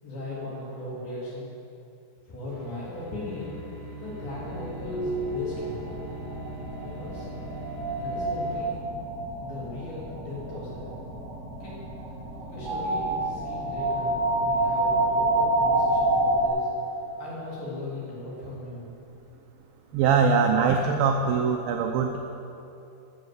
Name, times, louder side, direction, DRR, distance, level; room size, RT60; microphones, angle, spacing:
voice 1, 0.0-1.5 2.3-3.5 4.0-5.8 6.8-7.3 7.9-8.8 9.4-10.9 11.6-11.8 12.4-16.7 17.2-18.9 19.9-20.0, left 2 dB, 60° left, -7 dB, 5.3 m, -38 dB
sound 1, 2.5-8.6, right 1 dB, 85° left, 4.1 m, -42 dB
sound 2, 4.3-16.5, right 2 dB, 40° right, 1.6 m, -28 dB
voice 2, 19.9-22.2, right 5 dB, 85° right, 4 dB, 2.0 m, -22 dB
13.5 x 6.6 x 8.0 m, 2.8 s
omnidirectional pair, 5.0 m